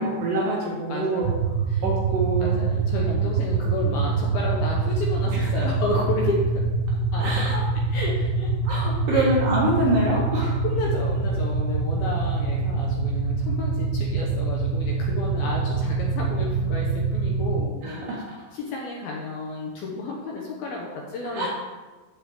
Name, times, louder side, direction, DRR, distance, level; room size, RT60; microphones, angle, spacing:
voice 1, 0.0-1.3 1.8-2.6 5.3-5.7 7.2-7.6 8.7-10.6 17.8-18.4 21.2-21.5, right 1 dB, 65° right, -4 dB, 2.5 m, -25 dB
voice 2, 0.9-1.8 2.1-6.6 7.1-7.4 7.9-8.5 8.8-9.3 10.4-18.0 18.5-21.5, left 2 dB, 70° left, -2 dB, 2.4 m, -32 dB
sound 1, 1.2-17.7, right 4 dB, 85° right, 2.3 m, -25 dB
13.5 x 4.8 x 3.5 m, 1.3 s
omnidirectional pair, 5.2 m